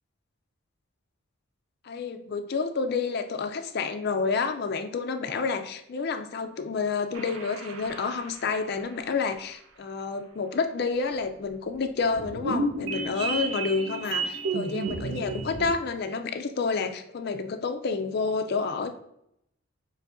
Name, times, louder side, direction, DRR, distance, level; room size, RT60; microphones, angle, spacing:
voice 1, 1.8-18.9, left 4 dB, 50° left, 7 dB, 0.4 m, -29 dB
sound 1, 7.1-8.7 12.1-15.7, right 3 dB, 75° right, 0.7 m, -32 dB
7.1 x 2.6 x 2.5 m, 0.77 s
head